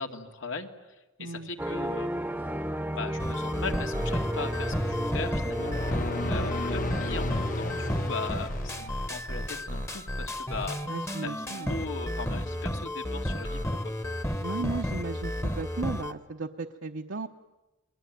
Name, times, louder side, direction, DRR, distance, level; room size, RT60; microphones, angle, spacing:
voice 1, 0.0-2.1 2.9-10.8 11.2-13.9, left 4 dB, 80° left, 5 dB, 2.3 m, -39 dB
sound 1, 1.6-8.1, right 1 dB, 10° right, 0.9 m, -34 dB
sound 2, 3.2-16.1, left 1 dB, 15° left, 1.1 m, -32 dB
sound 3, 5.3-9.6, left 2 dB, 45° left, 1.1 m, -34 dB
voice 2, 10.9-11.8 14.4-17.3, right 3 dB, 75° right, 1 dB, 1.0 m, -36 dB
29.0 x 22.0 x 9.3 m, 1.1 s
head